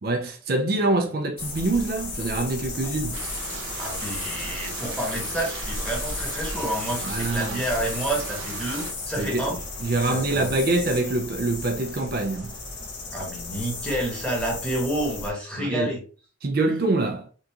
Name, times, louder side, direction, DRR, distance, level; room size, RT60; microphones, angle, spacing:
voice 1, 0.0-3.2 7.0-7.6 9.2-12.5 15.6-15.9 16.4-17.3, right 2 dB, 50° right, 0.4 m, -25 dB
sound 1, 1.4-15.3, left 3 dB, 60° left, 0.8 m, -34 dB
sound 2, 3.1-8.9, right 5 dB, 85° right, 0.7 m, -37 dB
voice 2, 3.8-9.6 10.0-10.5 13.1-16.0, right 1 dB, 5° left, 1.1 m, -29 dB
3.5 x 2.5 x 2.8 m
head